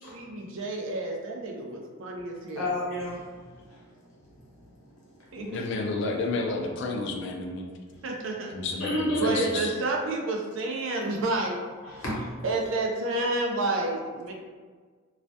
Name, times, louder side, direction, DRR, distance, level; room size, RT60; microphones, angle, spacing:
voice 1, 0.1-2.7 5.3-5.6 8.0-8.6 9.2-11.6 12.4-14.3, right 2 dB, 65° right, 1 dB, 0.4 m, -30 dB
voice 2, 2.6-3.8 5.3-5.7 8.8-9.5 11.8-12.3, left 1 dB, 85° left, -6 dB, 0.9 m, -31 dB
voice 3, 5.5-7.7 8.5-9.7, left 3 dB, 55° left, 1 dB, 0.3 m, -30 dB
2.3 x 2.1 x 2.6 m, 1.5 s
head